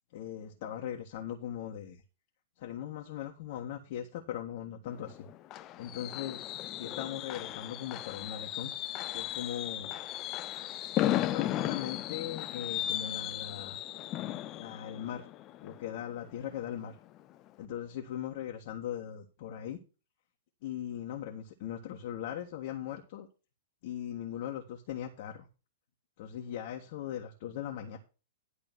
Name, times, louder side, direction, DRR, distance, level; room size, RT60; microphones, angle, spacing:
voice 1, 0.1-2.0 2.6-5.3 5.8-6.5 6.7-8.7 9.1-10.0 10.9-13.8 14.5-15.3 15.6-17.0 17.6-19.8 20.6-23.3 23.8-25.5 26.2-28.0, left 10 dB, 50° left, 1 dB, 1.5 m, -39 dB
Fireworks, 4.8-16.5 16.9-17.2 17.5-17.6, left 13 dB, 35° left, 0.6 m, -36 dB
11.5 x 3.8 x 7.5 m, 0.33 s
figure-of-eight pair, 105°, 0 cm